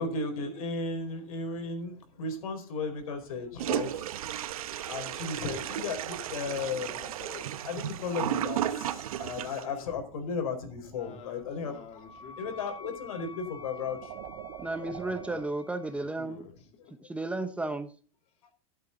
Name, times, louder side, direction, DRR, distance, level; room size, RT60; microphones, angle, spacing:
voice 1, 0.0-4.1 4.8-7.0 7.6-11.7 12.4-14.1, left 4 dB, 85° left, 7 dB, 4.7 m, -35 dB
sound 1, 2.9-15.5, right 12 dB, 55° right, 1.5 m, -50 dB
Toilet flush, 3.6-9.6, right 11 dB, 85° right, 1.1 m, -34 dB
voice 2, 7.0-7.6 8.1-8.4 8.8-9.0 9.5-10.0 10.9-12.6 15.9-17.0, left 6 dB, 35° left, 4 dB, 3.0 m, -49 dB
Wind instrument woodwind instrument, 11.4-16.2, left 4 dB, 15° left, 1.4 m, -49 dB
voice 3, 14.6-16.5 17.0-17.9, right 2 dB, 5° right, 8 dB, 0.9 m, -33 dB
14.0 x 8.3 x 4.0 m, 0.39 s
supercardioid pair, 135°, 18 cm